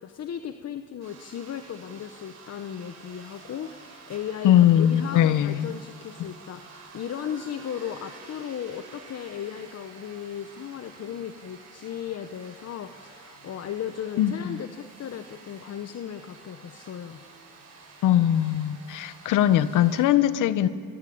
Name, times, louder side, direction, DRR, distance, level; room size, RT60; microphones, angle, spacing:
voice 1, 0.0-17.2, left 9 dB, 55° left, 9 dB, 1.1 m, -36 dB
sound 1, 1.0-20.1, right 4 dB, 65° right, 7.5 m, -49 dB
voice 2, 4.4-5.7 14.2-14.6 18.0-20.7, left 11 dB, 85° left, 14 dB, 1.1 m, -21 dB
24.5 x 23.0 x 8.7 m, 2.1 s
cardioid pair, 90°, 30 cm